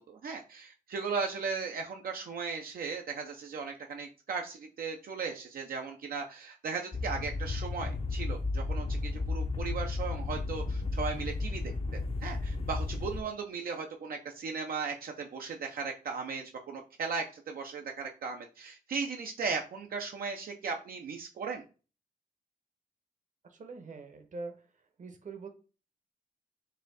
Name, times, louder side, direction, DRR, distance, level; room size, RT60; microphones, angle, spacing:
voice 1, 0.0-21.6, right 5 dB, 90° right, 3 dB, 0.5 m, -37 dB
sound 1, 6.9-13.2, left 3 dB, 40° left, 0.4 m, -33 dB
voice 2, 23.5-24.7 25.0-25.5, right 3 dB, 60° right, 6 dB, 0.8 m, -43 dB
4.1 x 2.6 x 3.9 m, 0.35 s
wide cardioid pair, 100°, 15 cm